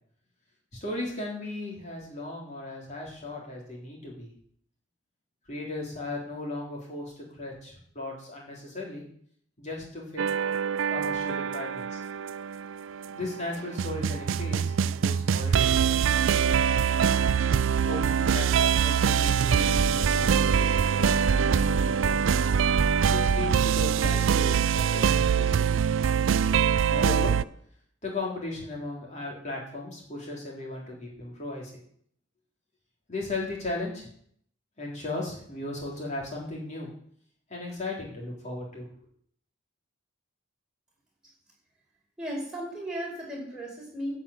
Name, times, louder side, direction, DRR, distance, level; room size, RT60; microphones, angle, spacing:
voice 1, 0.7-4.3 5.5-9.0 9.6-10.2 10.9-12.0 13.1-16.8 17.9-22.2 23.1-25.8 26.9-27.4 28.0-31.7 33.1-34.1 34.8-36.9 37.5-38.9, left 2 dB, 35° left, -3 dB, 3.8 m, -36 dB
sound 1, 10.2-27.4, right 7 dB, 75° right, 0.4 m, -24 dB
voice 2, 42.2-44.2, equal, 5° right, -4 dB, 4.9 m, -35 dB
11.0 x 5.9 x 8.8 m, 0.63 s
head